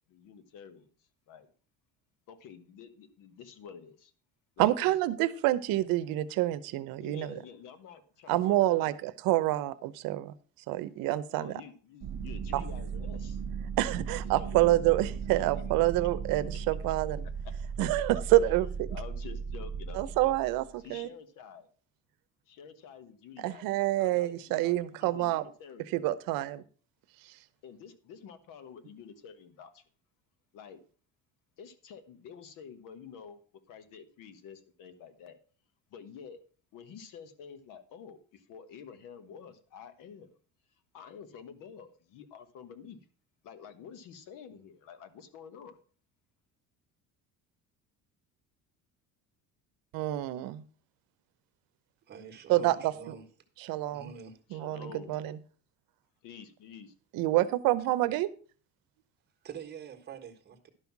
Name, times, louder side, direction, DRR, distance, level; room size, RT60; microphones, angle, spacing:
voice 1, 0.1-0.9 1.3-1.5 2.3-4.1 4.6-5.3 7.0-9.0 11.1-13.4 14.1-15.5 16.9-17.0 18.9-20.3 20.8-21.7 22.5-23.6 24.0-25.9 27.6-29.8 30.5-30.8 31.6-33.4 33.7-35.4 35.9-36.4 36.7-40.3 40.9-43.0 43.4-45.8 54.5-55.2 56.2-56.9, left 7 dB, 65° left, 1.3 m, -49 dB
voice 2, 4.6-7.4 8.3-10.3 10.7-11.6 12.5-12.6 13.8-17.2 17.8-18.9 19.9-21.1 23.4-25.4 25.9-26.6 27.2-27.3 49.9-50.6 52.5-53.1 53.6-54.1 54.5-55.4 57.1-58.3, right 16 dB, 75° right, 0.8 m, -27 dB
sound 1, 12.0-20.7, right 6 dB, 55° right, 1.2 m, -37 dB
voice 3, 52.1-53.2 53.9-54.4 59.4-60.7, right 7 dB, 30° right, 1.5 m, -45 dB
11.5 x 5.6 x 6.0 m
cardioid pair, 165°, 34 cm